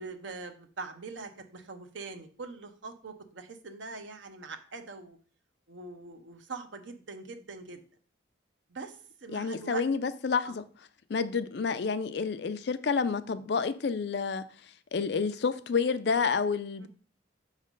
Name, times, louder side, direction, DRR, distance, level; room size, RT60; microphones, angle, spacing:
voice 1, 0.0-5.2 5.7-7.8 8.7-9.8 10.4-10.6 16.8-16.9, right 4 dB, 75° right, 0.8 m, -43 dB
voice 2, 9.3-10.6 11.1-14.4 14.9-16.9, left 5 dB, 60° left, 0.4 m, -29 dB
6.3 x 3.3 x 5.2 m
head